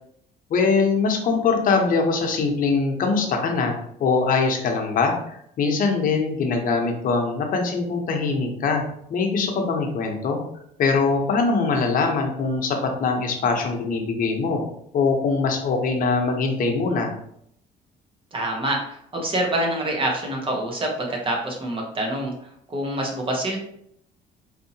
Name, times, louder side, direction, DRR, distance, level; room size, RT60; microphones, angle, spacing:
voice 1, 0.5-5.2 5.6-8.8 9.1-10.4 10.8-14.6 14.9-17.1, left 4 dB, 55° left, 3 dB, 0.9 m, -22 dB
voice 2, 18.3-22.3 22.7-23.6, right 1 dB, 30° right, 0 dB, 1.1 m, -26 dB
4.2 x 2.7 x 2.8 m, 0.71 s
cardioid pair, 110°, 17 cm